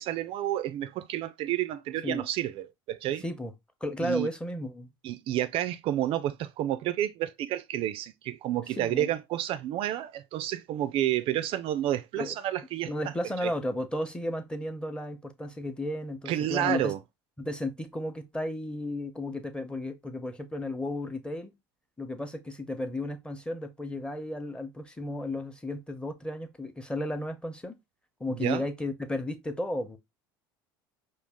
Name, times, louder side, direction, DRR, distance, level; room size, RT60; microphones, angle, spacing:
voice 1, 0.0-3.2 4.0-4.3 5.0-12.9 13.4-13.5 16.3-17.0 28.4-28.6, right 12 dB, 50° right, 0.3 m, -30 dB
voice 2, 3.2-3.5 3.8-4.9 8.8-9.1 12.2-12.3 12.8-16.9 17.4-21.5 22.0-27.7 28.2-30.0, left 1 dB, 10° left, 0.8 m, -34 dB
4.8 x 2.4 x 3.5 m
hypercardioid pair, 85°, 12 cm